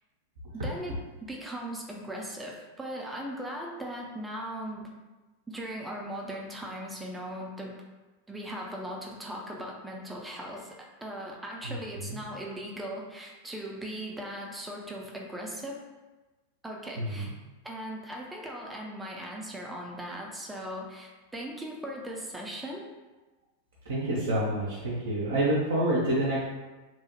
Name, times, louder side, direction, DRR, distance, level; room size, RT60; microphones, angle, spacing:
voice 1, 0.5-4.9 5.5-7.7 8.3-15.8 16.6-17.3 17.6-22.8, equal, 10° right, -1 dB, 0.4 m, -38 dB
voice 2, 17.0-17.3 23.9-26.4, right 1 dB, 60° right, -6 dB, 0.5 m, -28 dB
2.9 x 2.0 x 2.7 m, 1.2 s
figure-of-eight pair, 90°, 0 cm